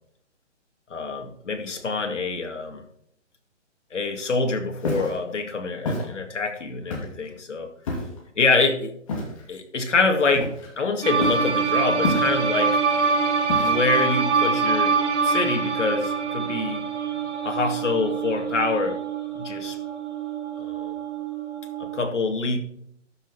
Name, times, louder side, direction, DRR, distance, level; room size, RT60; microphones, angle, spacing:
voice 1, 0.9-2.8 3.9-7.7 8.4-8.9 9.5-12.8 13.6-15.0 15.2-16.9 17.4-19.0 19.4-19.8 20.6-20.9 21.8-22.6, left 3 dB, 80° left, 4 dB, 2.5 m, -25 dB
Walk footsteps, 4.8-5.2 5.9-6.1 6.9-7.3 7.9-8.2 9.1-9.4 10.3-10.8 11.2-11.5 12.0-12.6 13.5-14.0, left 2 dB, 25° left, 2.5 m, -28 dB
sound 1, 11.0-22.0, right 5 dB, 70° right, 3.6 m, -25 dB
12.5 x 6.8 x 4.3 m, 0.69 s
hypercardioid pair, 170°, 36 cm